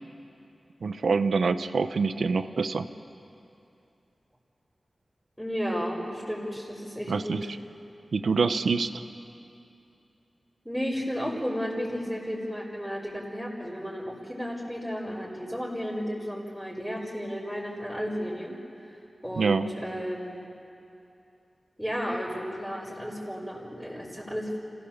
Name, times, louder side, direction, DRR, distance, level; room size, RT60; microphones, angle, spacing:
voice 1, 0.8-2.9 7.1-7.5 8.1-8.9 19.4-19.7, right 4 dB, 80° right, 11 dB, 0.8 m, -25 dB
voice 2, 5.4-7.4 10.6-18.5 18.9-19.0 19.2-20.5 21.8-24.6, equal, ahead, -8 dB, 4.8 m, -33 dB
27.0 x 16.5 x 7.3 m, 2.7 s
cardioid pair, 40°, 0 cm